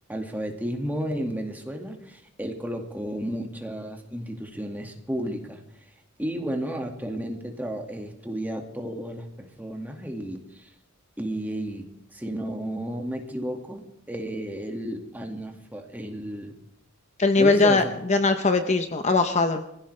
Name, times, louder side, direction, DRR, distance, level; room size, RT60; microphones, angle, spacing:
voice 1, 0.1-5.6 6.2-10.7 11.2-16.5 17.4-17.9, equal, 10° right, 3 dB, 2.0 m, -33 dB
voice 2, 17.2-17.8 18.1-19.6, left 3 dB, 30° left, 7 dB, 0.9 m, -20 dB
24.5 x 16.0 x 3.4 m, 0.78 s
head